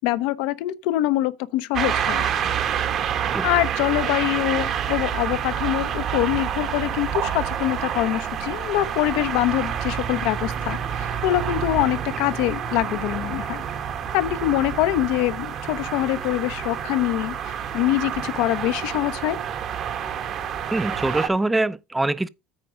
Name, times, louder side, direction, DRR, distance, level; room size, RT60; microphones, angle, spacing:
voice 1, 0.0-2.3 3.4-13.7 14.1-19.4, left 15 dB, 75° left, 0.7 m, -24 dB
sound 1, 1.7-21.3, right 8 dB, 55° right, 1.5 m, -28 dB
voice 2, 20.7-22.3, right 2 dB, 10° right, 0.5 m, -23 dB
9.0 x 5.0 x 5.1 m
supercardioid pair, 90°, 0 cm